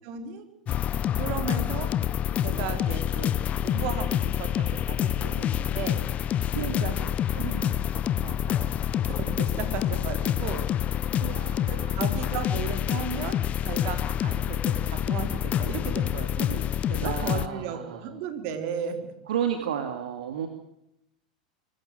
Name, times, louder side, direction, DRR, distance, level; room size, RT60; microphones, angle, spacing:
voice 1, 0.0-0.5 1.2-2.1 2.4-3.3 3.6-6.0 6.8-10.6 11.7-16.6 16.9-19.1, right 7 dB, 55° right, 7 dB, 4.2 m, -35 dB
sound 1, 0.7-17.5, left 10 dB, 35° left, 0.8 m, -27 dB
voice 2, 11.2-12.4 17.0-18.0 19.3-20.5, right 9 dB, 75° right, 6 dB, 2.6 m, -32 dB
24.5 x 14.5 x 7.8 m, 0.81 s
hypercardioid pair, 95°, 4 cm